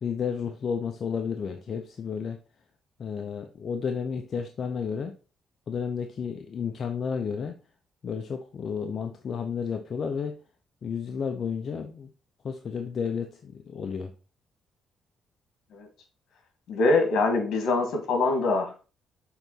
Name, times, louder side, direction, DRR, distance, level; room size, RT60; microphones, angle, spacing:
voice 1, 0.0-2.4 3.0-5.1 5.7-7.6 8.0-10.4 10.8-12.1 12.4-14.1, left 6 dB, 50° left, 5 dB, 0.7 m, -32 dB
voice 2, 16.7-18.8, left 3 dB, 75° left, 4 dB, 2.1 m, -24 dB
7.0 x 3.9 x 4.0 m, 0.34 s
cardioid pair, 90°, 0 cm